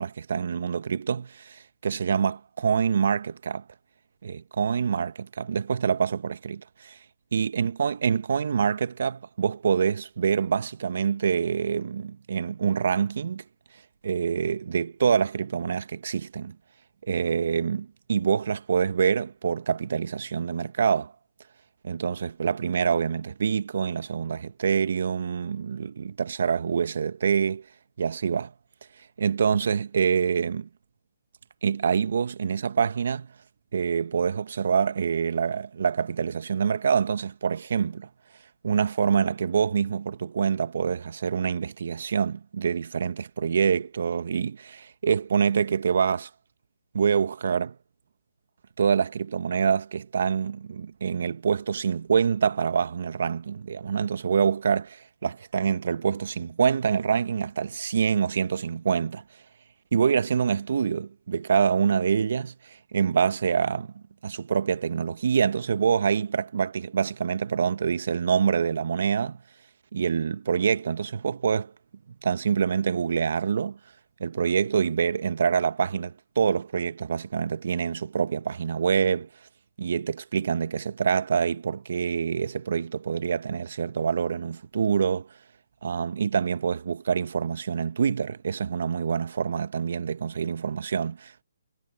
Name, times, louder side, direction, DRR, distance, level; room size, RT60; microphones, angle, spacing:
voice 1, 0.0-3.6 4.2-7.0 7.3-13.4 14.0-16.6 17.1-21.1 21.8-27.7 28.0-28.5 29.0-30.7 31.6-33.3 33.7-38.1 38.6-46.3 46.9-47.8 48.8-59.2 59.9-69.4 69.9-71.7 72.2-73.8 74.2-79.3 79.8-85.3 85.8-91.4, right 6 dB, 60° right, 1.3 m, -26 dB
figure-of-eight pair, 145°, 0 cm